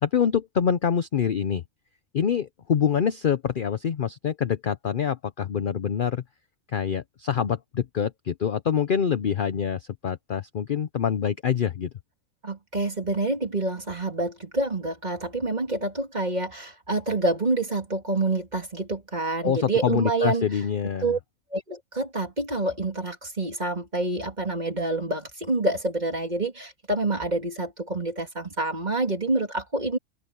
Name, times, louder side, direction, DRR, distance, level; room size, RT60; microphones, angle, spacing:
voice 1, 0.0-1.6 2.1-6.2 6.7-11.9 19.4-21.2, left 7 dB, 50° left, 0.7 m, -25 dB
voice 2, 12.4-20.4 21.0-21.2 21.5-30.0, right 2 dB, 30° right, 2.9 m, -27 dB
open air
omnidirectional pair, 1.5 m